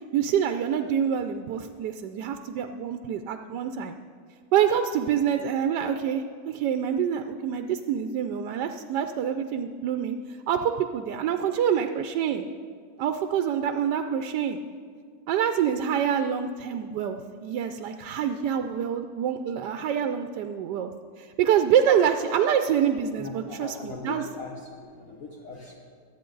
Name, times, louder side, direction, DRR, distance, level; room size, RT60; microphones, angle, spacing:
voice 1, 0.1-4.0 4.5-12.4 13.0-14.6 15.3-20.9 21.2-24.2, right 8 dB, 75° right, 7 dB, 1.1 m, -26 dB
voice 2, 23.2-25.8, left 3 dB, 50° left, -2 dB, 1.4 m, -40 dB
23.5 x 8.9 x 3.9 m, 2.1 s
omnidirectional pair, 1.9 m